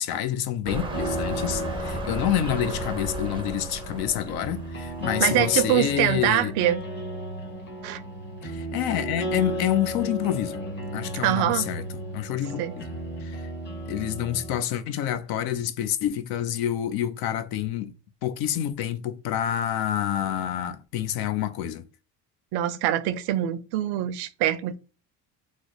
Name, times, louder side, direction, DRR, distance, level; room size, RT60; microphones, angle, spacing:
voice 1, 0.0-6.5 8.4-10.6 10.9-11.8 12.1-12.8 13.2-13.5 13.9-17.9 18.2-21.8, left 11 dB, 65° left, 0.6 m, -28 dB
sound 1, 0.6-5.6 6.3-6.4, right 2 dB, 15° right, 0.5 m, -36 dB
sound 2, 0.9-14.6, equal, 25° left, 1.0 m, -34 dB
voice 2, 5.2-6.8 7.8-8.0 11.2-11.6 12.6-12.7 22.5-24.8, right 13 dB, 75° right, 0.5 m, -24 dB
3.2 x 2.0 x 3.9 m
cardioid pair, 110°, 40 cm